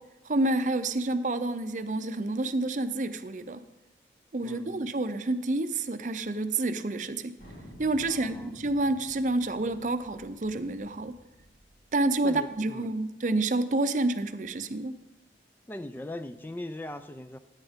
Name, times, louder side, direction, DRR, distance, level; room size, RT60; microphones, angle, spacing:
voice 1, 0.3-3.6 4.3-7.3 7.8-11.1 11.9-15.0, right 2 dB, 45° right, 11 dB, 0.5 m, -29 dB
voice 2, 4.4-4.9 8.0-8.6 12.2-12.9 15.7-17.4, left 1 dB, 10° left, 10 dB, 0.3 m, -40 dB
Thunder, 7.4-12.5, equal, 60° left, 4.3 m, -52 dB
13.5 x 9.0 x 3.6 m, 1.0 s
head